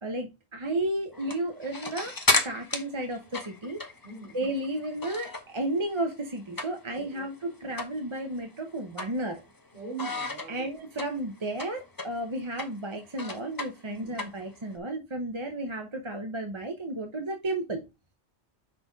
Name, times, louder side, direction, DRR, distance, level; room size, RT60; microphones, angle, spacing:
voice 1, 0.0-2.2 2.4-3.8 4.3-9.4 10.5-17.8, right 1 dB, 30° right, 0.8 m, -33 dB
sound 1, 1.1-5.6 5.9-7.1 7.4-7.5 7.8-8.0 8.4-9.6 10.0-14.8, left 2 dB, 20° left, 0.8 m, -32 dB
voice 2, 4.0-4.4 6.9-7.2 9.7-10.7 13.9-14.1, right 5 dB, 50° right, 3.7 m, -41 dB
6.0 x 4.2 x 4.5 m
omnidirectional pair, 1.1 m